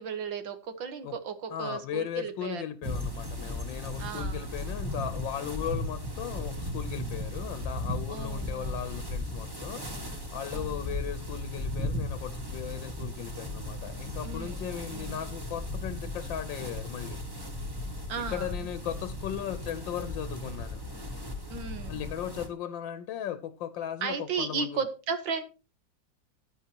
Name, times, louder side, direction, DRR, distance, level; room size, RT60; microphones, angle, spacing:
voice 1, 0.0-2.6 4.0-4.5 8.1-8.8 10.5-10.8 14.2-14.6 14.9-15.1 18.1-18.5 21.5-22.0 24.0-25.4, right 6 dB, 80° right, 2.2 m, -35 dB
voice 2, 1.5-17.2 18.2-20.8 21.8-24.8, left 10 dB, 80° left, 1.5 m, -37 dB
sound 1, 2.8-22.5, left 1 dB, 15° right, 1.4 m, -36 dB
15.0 x 11.0 x 2.9 m
omnidirectional pair, 2.0 m